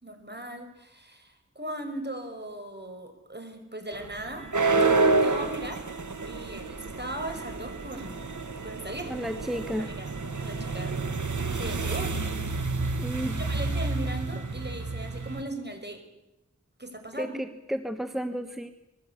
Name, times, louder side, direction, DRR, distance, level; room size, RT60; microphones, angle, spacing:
voice 1, 0.0-5.8 6.3-9.2 9.8-11.0 11.6-12.2 13.4-16.0 16.8-17.4, right 1 dB, 35° right, 5 dB, 5.9 m, -38 dB
sound 1, 3.9-15.4, right 3 dB, 85° right, 1.6 m, -29 dB
voice 2, 9.1-9.9 13.0-13.4 17.2-18.7, equal, ahead, 8 dB, 1.5 m, -32 dB
26.0 x 21.0 x 8.4 m, 0.92 s
wide cardioid pair, 40°, 29 cm